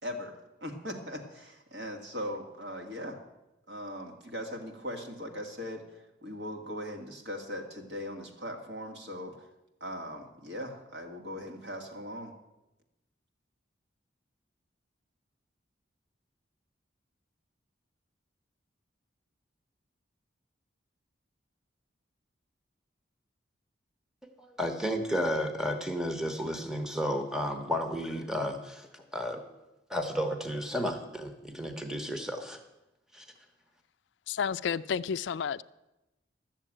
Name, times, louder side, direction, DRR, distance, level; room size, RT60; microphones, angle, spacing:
voice 1, 0.0-3.2 3.7-9.5 9.8-12.3, equal, 60° right, 3 dB, 2.1 m, -39 dB
voice 2, 24.2-29.4 29.9-32.6 33.1-33.3, equal, 5° right, 6 dB, 1.0 m, -32 dB
voice 3, 34.3-35.6, left 7 dB, 70° left, 14 dB, 0.4 m, -31 dB
12.5 x 7.3 x 8.8 m, 0.97 s
head